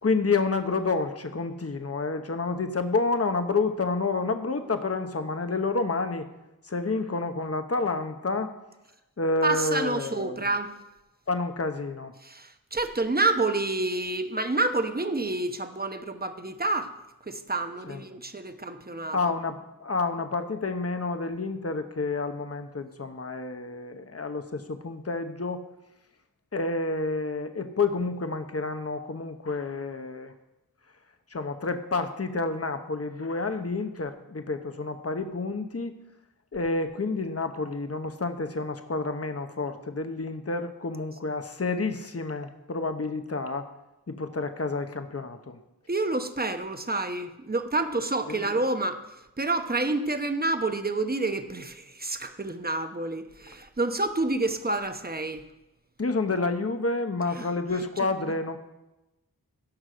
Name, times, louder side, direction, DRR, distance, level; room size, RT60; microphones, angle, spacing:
voice 1, 0.0-6.3 6.6-8.5 9.2-10.4 11.3-12.1 17.9-18.0 19.1-25.6 26.5-30.3 31.3-35.9 36.5-43.7 44.1-45.6 48.3-48.4 56.0-58.6, left 3 dB, 40° left, 7 dB, 1.0 m, -29 dB
voice 2, 9.4-10.7 12.2-16.9 17.2-19.2 45.9-49.0 49.4-55.4 57.4-57.5, right 2 dB, 25° right, 8 dB, 1.0 m, -28 dB
16.5 x 6.2 x 5.1 m, 0.97 s
wide cardioid pair, 40°, 38 cm